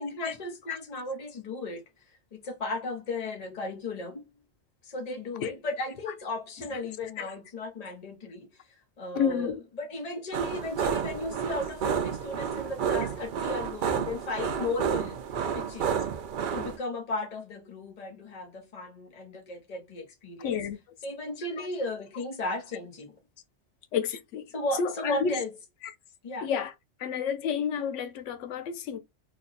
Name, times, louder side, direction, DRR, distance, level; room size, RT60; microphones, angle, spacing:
voice 1, 0.0-4.2 4.8-15.2 15.5-16.0 16.5-20.6 21.0-23.2 24.5-25.5 26.2-26.5, left 2 dB, 35° left, 0.9 m, -35 dB
voice 2, 9.1-9.6 13.0-13.1 20.4-20.8 21.6-21.7 23.9-24.5 24.7-25.4 25.8-25.9 26.4-26.7 27.0-29.0, left 7 dB, 90° left, 0.9 m, -30 dB
sound 1, 10.3-16.8, right 7 dB, 60° right, 0.6 m, -30 dB
3.1 x 2.1 x 3.9 m
omnidirectional pair, 1.2 m